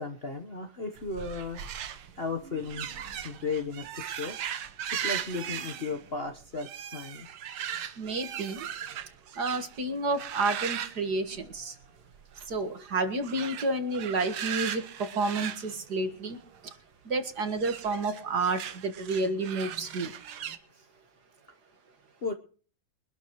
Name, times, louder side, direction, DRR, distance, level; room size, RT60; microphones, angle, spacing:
voice 1, 0.0-1.6 2.2-2.9 3.2-4.4 4.9-7.3 20.8-20.9 22.2-22.3, left 4 dB, 35° left, 4 dB, 1.1 m, -35 dB
sound 1, 1.0-9.8 10.1-11.9 12.1-12.5 13.2-16.6 17.5-20.6, right 9 dB, 80° right, 1.9 m, -38 dB
voice 2, 8.0-8.7 9.4-11.7 12.5-16.4 17.1-20.1, right 3 dB, 50° right, 8 dB, 2.1 m, -30 dB
23.5 x 12.0 x 3.1 m, 0.41 s
omnidirectional pair, 2.3 m